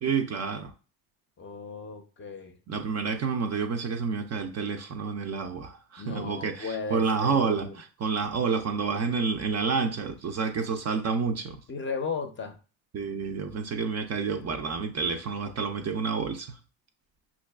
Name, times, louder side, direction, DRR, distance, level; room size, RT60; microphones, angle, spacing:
voice 1, 0.0-0.7 2.7-11.6 12.9-16.6, right 5 dB, 40° right, 0.4 m, -29 dB
voice 2, 1.4-2.6 6.0-7.7 11.7-12.6, left 5 dB, 30° left, 0.5 m, -35 dB
5.6 x 2.4 x 2.3 m
supercardioid pair, 90°, 44 cm